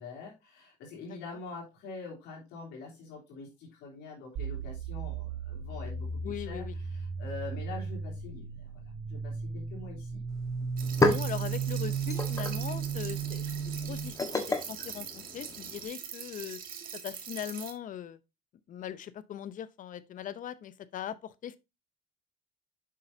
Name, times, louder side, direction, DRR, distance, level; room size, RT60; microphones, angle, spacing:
voice 1, 0.0-8.7 9.1-10.2 10.8-10.9, left 4 dB, 85° left, 3.1 m, -45 dB
sound 1, 4.3-14.1, right 6 dB, 85° right, 2.1 m, -35 dB
voice 2, 6.2-6.7 11.0-16.6 17.0-18.2 18.7-21.6, left 10 dB, 50° left, 0.7 m, -40 dB
sound 2, 10.3-10.4 10.7-15.9, left 2 dB, 20° left, 1.3 m, -33 dB
sound 3, 10.8-17.7, right 8 dB, 55° right, 1.5 m, -43 dB
7.4 x 5.6 x 2.7 m
cardioid pair, 110°, 17 cm